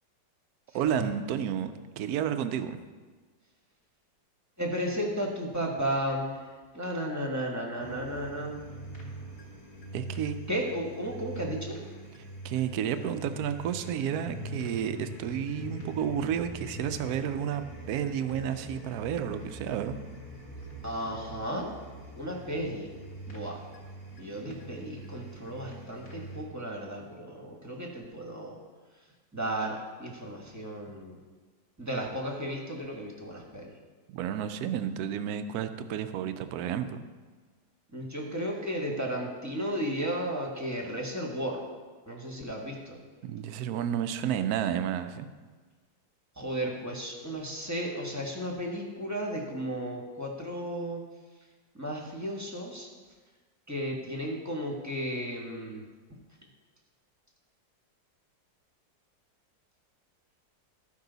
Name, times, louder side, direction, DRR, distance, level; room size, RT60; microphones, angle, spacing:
voice 1, 0.7-1.7 2.0-2.8 9.9-10.4 12.4-19.9 34.1-37.0 43.2-45.3, right 9 dB, 70° right, 10 dB, 0.9 m, -31 dB
voice 2, 4.6-6.5 6.7-8.5 10.5-11.8 20.8-21.7 22.2-22.9 23.3-23.5 24.2-28.6 29.3-31.2 31.8-33.7 37.9-41.6 42.1-43.0 46.4-51.0 51.7-52.9 53.7-55.8, equal, 10° right, -1 dB, 1.0 m, -34 dB
sound 1, 7.8-26.4, right 1 dB, 35° left, 1.7 m, -43 dB
14.5 x 5.5 x 3.9 m, 1.4 s
omnidirectional pair, 2.0 m